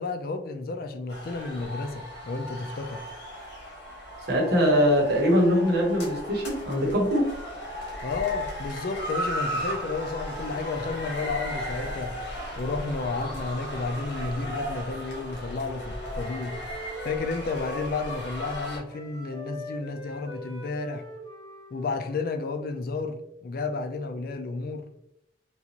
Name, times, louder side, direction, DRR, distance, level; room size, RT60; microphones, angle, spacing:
voice 1, 0.0-3.0 8.0-12.1 12.6-16.5 17.0-21.0 21.7-24.9, left 3 dB, 55° left, 0.4 m, -32 dB
sound 1, 1.1-18.8, equal, 70° left, 1.1 m, -36 dB
voice 2, 4.3-7.3, equal, 60° right, 1.1 m, -22 dB
Wind instrument woodwind instrument, 15.5-18.6 18.9-22.7, left 2 dB, 25° left, 1.0 m, -42 dB
3.8 x 2.5 x 2.9 m
head